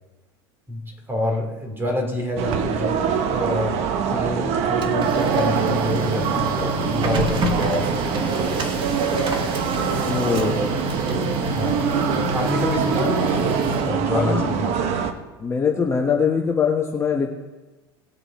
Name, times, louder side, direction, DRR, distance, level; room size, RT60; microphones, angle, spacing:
voice 1, 0.7-8.8 10.3-10.7 11.0-14.9, left 1 dB, 15° right, 2 dB, 3.2 m, -28 dB
sound 1, 2.4-15.1, right 7 dB, 55° right, 1.2 m, -24 dB
Printer, 4.5-14.3, right 1 dB, 40° right, 1.9 m, -28 dB
voice 2, 10.0-10.5 14.1-14.5 15.4-17.3, left 6 dB, 20° left, 0 dB, 1.3 m, -22 dB
19.0 x 6.7 x 4.4 m, 1.2 s
supercardioid pair, 110°, 13 cm